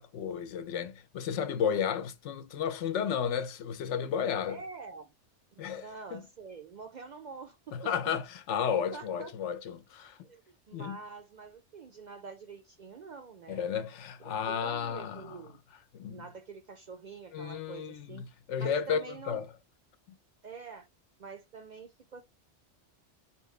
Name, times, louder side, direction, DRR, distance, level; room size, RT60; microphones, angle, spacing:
voice 1, 0.0-4.6 5.6-5.8 6.1-6.2 7.7-10.2 10.7-11.0 13.5-15.4 15.9-16.2 17.3-19.5, left 7 dB, 85° left, 0.9 m, -33 dB
voice 2, 4.5-5.1 5.5-7.9 8.5-9.3 10.2-13.7 14.5-15.6 16.1-18.2 18.6-19.4 20.4-20.9 21.2-22.2, right 5 dB, 60° right, 0.5 m, -46 dB
3.8 x 3.0 x 3.1 m
omnidirectional pair, 1.2 m